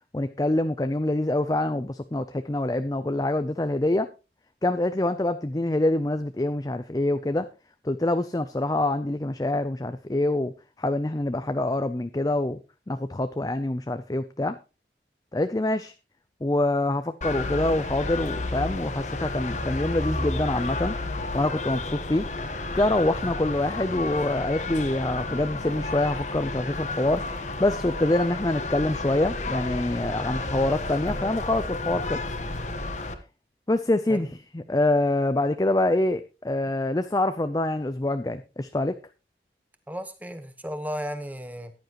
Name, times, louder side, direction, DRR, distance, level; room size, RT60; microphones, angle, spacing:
voice 1, 0.1-4.1 4.6-7.5 7.8-10.5 10.8-12.6 12.9-14.6 15.3-15.9 16.4-21.0 21.3-22.3 22.7-27.2 27.6-32.2 33.7-34.3 34.5-39.0, left 1 dB, 20° left, 10 dB, 0.5 m, -25 dB
sound 1, 17.2-33.1, left 2 dB, 40° left, 1.2 m, -31 dB
voice 2, 39.9-41.7, equal, 10° right, 9 dB, 1.2 m, -34 dB
14.5 x 10.5 x 3.0 m, 0.30 s
head